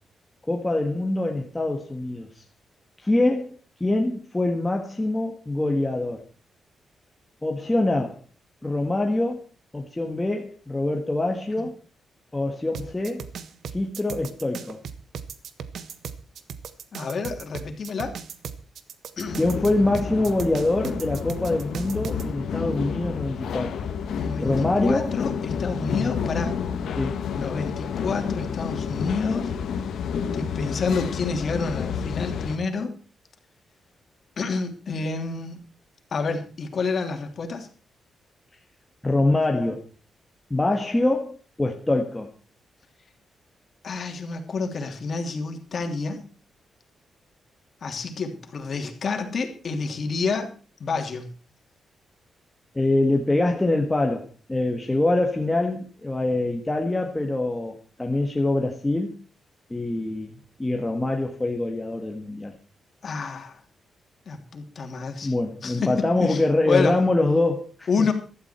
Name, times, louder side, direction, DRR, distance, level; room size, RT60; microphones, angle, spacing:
voice 1, 0.5-2.4 3.0-6.2 7.4-8.2 8.6-9.4 9.7-11.7 12.3-13.3 13.7-14.8 19.4-23.9 24.4-25.1 27.0-27.2 39.0-39.8 40.5-42.3 52.8-59.2 59.7-62.5 65.2-68.1, left 2 dB, 10° left, 1 dB, 1.7 m, -24 dB
sound 1, 12.7-22.2, right 7 dB, 70° right, 1.4 m, -37 dB
voice 2, 16.9-18.1 19.2-19.4 24.2-26.6 27.3-29.5 30.3-33.0 34.4-35.6 36.1-37.7 43.8-46.3 47.8-50.5 50.8-51.3 63.0-63.6 64.3-65.3 65.6-67.0 67.9-68.1, left 4 dB, 50° left, 5 dB, 3.0 m, -28 dB
sound 2, 19.3-32.6, left 6 dB, 80° left, 1.8 m, -30 dB
15.5 x 13.0 x 4.5 m, 0.37 s
cardioid pair, 125°, 0 cm